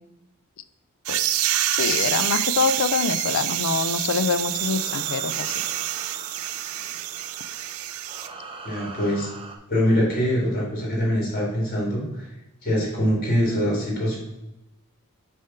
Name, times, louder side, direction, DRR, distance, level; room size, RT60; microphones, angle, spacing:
sound 1, 1.1-8.3, right 13 dB, 75° right, 0.4 m, -27 dB
voice 1, 1.7-5.5, left 5 dB, 65° left, 13 dB, 0.4 m, -25 dB
sound 2, 4.2-9.6, right 3 dB, 25° right, 0.6 m, -42 dB
voice 2, 8.6-9.3 9.7-12.3 12.6-14.2, equal, 40° left, -4 dB, 2.4 m, -23 dB
6.4 x 3.5 x 5.6 m, 0.93 s
head